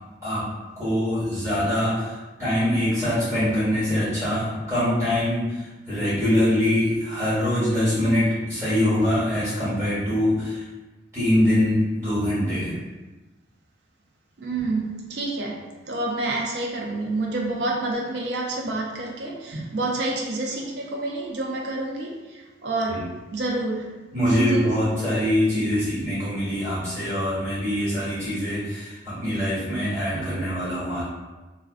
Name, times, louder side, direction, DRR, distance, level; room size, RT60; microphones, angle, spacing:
voice 1, 0.8-10.6 11.1-12.7 22.9-23.0 24.1-31.0, left 1 dB, 15° right, -12 dB, 1.2 m, -23 dB
voice 2, 14.4-24.0 24.3-24.7, right 2 dB, 60° right, -2 dB, 0.4 m, -28 dB
2.4 x 2.1 x 2.4 m, 1.2 s
head